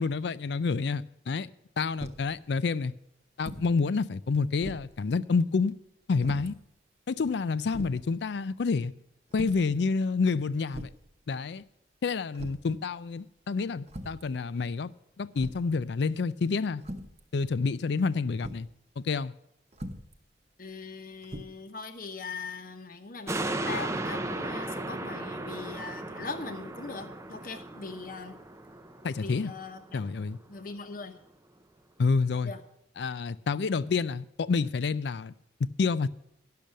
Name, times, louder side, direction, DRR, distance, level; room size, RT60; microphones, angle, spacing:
voice 1, 0.0-1.5 1.8-2.9 3.4-5.7 6.1-6.6 7.1-8.9 9.3-10.9 11.3-11.6 12.0-14.9 15.2-16.8 17.3-18.7 19.0-19.3 29.0-29.5 29.9-30.4 32.0-32.5 33.0-35.3 35.8-36.1, left 4 dB, 70° left, 0.4 m, -28 dB
sound 1, 2.0-2.3 3.4-3.7 4.1-4.2 4.6-5.0 6.2-6.5 7.3-7.4 7.7-8.0 9.3-9.7 10.7-11.1 12.3-12.7 13.9-14.3 15.4-15.7 16.8-17.2 18.4-18.7 19.7-20.2 21.2-21.4, equal, 35° right, 1.0 m, -41 dB
voice 2, 20.6-28.4 29.2-30.0 30.5-31.2 32.4-32.6, left 4 dB, 50° left, 0.9 m, -40 dB
sound 2, 23.3-29.9 30.4-30.5, right 2 dB, 15° right, 0.5 m, -36 dB
10.5 x 6.8 x 7.4 m
head